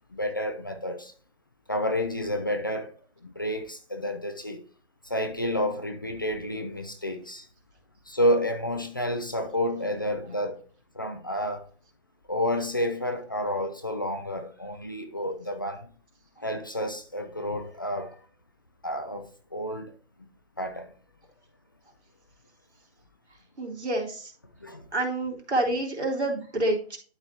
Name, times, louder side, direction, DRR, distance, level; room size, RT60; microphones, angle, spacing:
voice 1, 0.1-1.1 1.7-2.9 3.2-4.6 5.0-7.5 8.1-10.6 10.9-11.7 12.3-15.9 16.4-18.1 18.8-19.9 20.6-20.9 24.6-24.9, equal, 20° left, 0.5 m, -30 dB
voice 2, 23.6-24.3 24.9-27.0, right 2 dB, 90° right, 3.5 m, -28 dB
12.0 x 4.0 x 3.0 m
hypercardioid pair, 160°, 33 cm